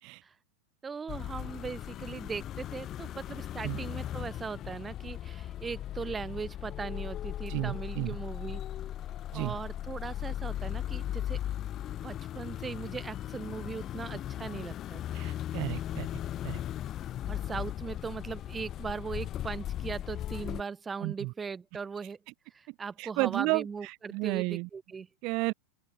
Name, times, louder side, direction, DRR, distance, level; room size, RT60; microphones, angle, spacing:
voice 1, 0.8-8.6 9.3-11.4 12.0-15.2 17.3-22.2 22.5-25.1, right 5 dB, 15° right, 1.2 m, -39 dB
sound 1, 1.1-20.6, left 12 dB, 30° left, 1.1 m, -37 dB
voice 2, 7.5-8.2 9.3-9.5 15.1-16.1 16.4-16.6 21.0-21.3 22.7-24.7 25.2-25.5, right 26 dB, 40° right, 0.5 m, -32 dB
open air
figure-of-eight pair, 90°, 0 cm